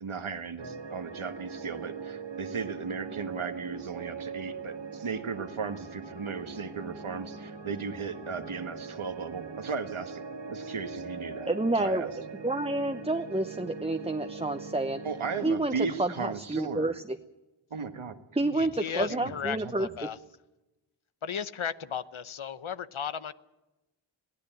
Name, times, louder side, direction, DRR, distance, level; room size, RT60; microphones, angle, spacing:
voice 1, 0.0-11.5 11.8-12.1 15.0-16.9 17.7-18.2 18.4-18.5 19.1-19.5, right 5 dB, 85° right, 8 dB, 1.6 m, -36 dB
sound 1, 0.6-15.5, right 5 dB, 60° right, 1.9 m, -41 dB
voice 2, 11.5-12.1 12.4-15.0 15.4-17.2 18.4-19.9, right 2 dB, 10° right, 7 dB, 0.9 m, -29 dB
voice 3, 18.5-20.2 21.2-23.3, left 8 dB, 80° left, 14 dB, 0.9 m, -35 dB
22.0 x 15.5 x 9.0 m, 1.0 s
cardioid pair, 40°, 48 cm